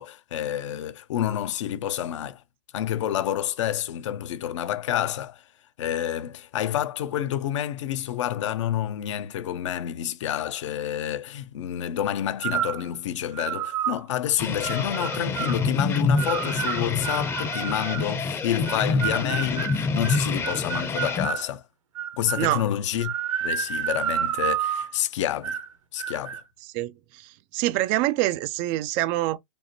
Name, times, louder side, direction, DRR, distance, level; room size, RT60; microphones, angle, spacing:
voice 1, 0.0-2.4 2.7-5.4 5.8-21.6 22.2-23.1 23.4-25.6 25.9-26.4, left 11 dB, 65° left, 0.7 m, -28 dB
sound 1, 12.4-12.8 13.4-14.0 14.6-15.6 16.2-18.1 18.7-21.5 22.0-22.5 23.0-25.0 25.4-25.7 26.0-26.4, right 9 dB, 75° right, 1.2 m, -30 dB
sound 2, 14.4-21.3, left 4 dB, 15° left, 0.7 m, -27 dB
voice 2, 26.7-29.4, right 16 dB, 35° right, 0.4 m, -26 dB
5.2 x 2.1 x 2.9 m
hypercardioid pair, 130°, 17 cm